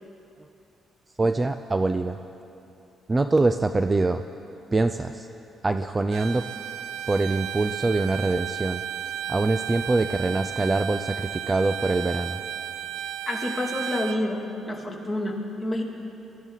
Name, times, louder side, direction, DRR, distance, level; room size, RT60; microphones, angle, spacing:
voice 1, 1.2-2.2 3.1-4.2 4.7-5.3 5.6-6.5 7.1-8.8 9.3-12.4, right 2 dB, 25° right, 9 dB, 0.5 m, -24 dB
Bowed string instrument, 6.1-14.2, right 10 dB, 85° right, 0.5 m, -34 dB
voice 2, 13.3-15.8, left 1 dB, 15° left, -1 dB, 2.5 m, -28 dB
23.0 x 14.0 x 4.0 m, 2.8 s
cardioid pair, 90°, 0 cm